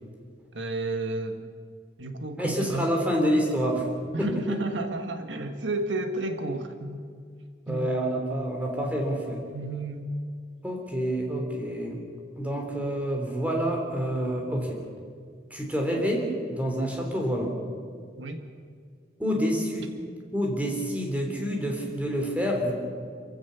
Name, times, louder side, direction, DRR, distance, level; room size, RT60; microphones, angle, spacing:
voice 1, 0.5-1.5 2.0-2.9 4.1-7.1 7.7-8.0 9.5-10.1 18.2-18.4, right 2 dB, 85° right, 7 dB, 1.6 m, -32 dB
voice 2, 2.4-3.9 4.2-4.6 7.7-9.4 10.6-12.0 12.4-14.8 15.5-17.5 19.2-19.9 20.3-22.7, equal, 10° right, 1 dB, 3.5 m, -28 dB
28.0 x 15.5 x 7.1 m, 2.1 s
head